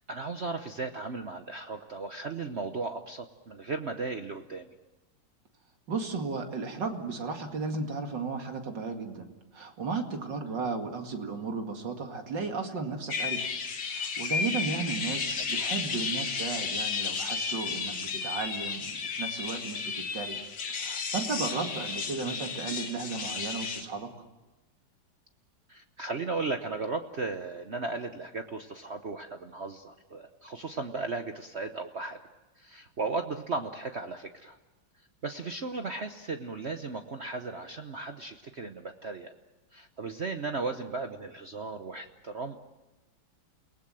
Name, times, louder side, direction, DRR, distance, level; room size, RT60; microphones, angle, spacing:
voice 1, 0.1-4.7 10.5-10.6 15.4-15.7 22.2-22.4 25.7-32.2 32.6-34.6 35.2-39.3 39.7-42.6, right 3 dB, 45° right, 6 dB, 0.9 m, -36 dB
voice 2, 5.9-9.3 9.5-13.5 13.9-20.4 20.7-24.1, right 4 dB, 65° right, 4 dB, 2.8 m, -34 dB
sound 1, 13.1-23.8, left 5 dB, 65° left, 2.3 m, -33 dB
29.0 x 19.0 x 7.6 m, 1.1 s
omnidirectional pair, 2.1 m